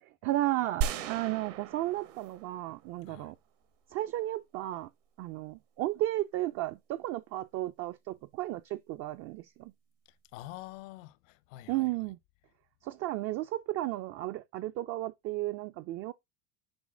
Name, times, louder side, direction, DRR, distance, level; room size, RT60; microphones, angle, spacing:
voice 1, 0.0-3.4 3.9-4.9 5.2-9.7 11.7-12.2 12.8-16.1, right 16 dB, 40° right, 0.4 m, -34 dB
sound 1, 0.8-3.1, right 8 dB, 75° right, 1.5 m, -36 dB
voice 2, 10.3-11.9, left 16 dB, 80° left, 1.1 m, -46 dB
9.6 x 4.2 x 3.8 m
supercardioid pair, 130°, 38 cm